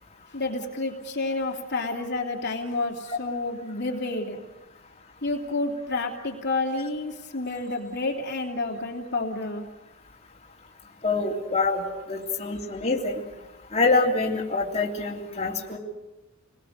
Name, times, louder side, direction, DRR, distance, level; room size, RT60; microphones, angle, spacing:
voice 1, 0.3-4.4 5.2-9.6, left 2 dB, 55° left, 1 dB, 3.1 m, -29 dB
voice 2, 11.0-11.8 12.1-13.2 13.7-15.8, left 3 dB, 30° left, -2 dB, 3.3 m, -25 dB
29.5 x 21.0 x 6.7 m, 1.0 s
head